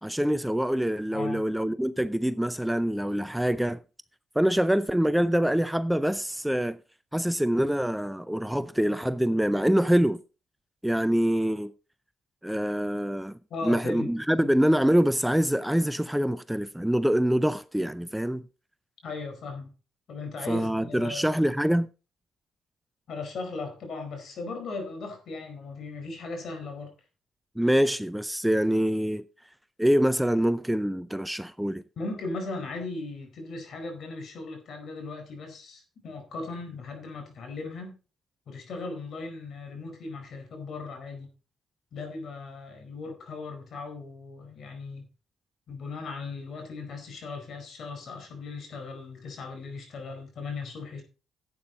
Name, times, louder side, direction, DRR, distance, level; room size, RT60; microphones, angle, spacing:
voice 1, 0.0-3.8 4.4-6.8 7.1-10.2 10.8-11.7 12.4-18.5 20.5-21.9 27.6-29.2 29.8-31.8, equal, 5° right, 0.5 m, -25 dB
voice 2, 1.1-1.5 13.5-14.1 14.4-14.5 19.0-19.7 20.1-21.3 23.1-26.9 32.0-38.0 38.5-41.3 41.9-45.1 45.7-51.0, left 3 dB, 65° left, 4.6 m, -37 dB
11.5 x 8.7 x 4.0 m
cardioid pair, 90°, 0 cm